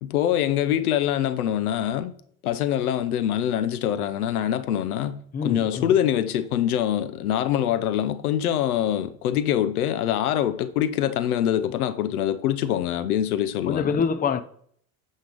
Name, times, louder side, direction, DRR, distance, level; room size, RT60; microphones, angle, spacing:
voice 1, 0.0-2.1 2.4-14.0, left 10 dB, 80° left, 0.8 m, -24 dB
voice 2, 5.3-5.9 13.7-14.4, left 6 dB, 20° left, 0.6 m, -25 dB
9.3 x 4.5 x 5.0 m
hypercardioid pair, 75°, 43 cm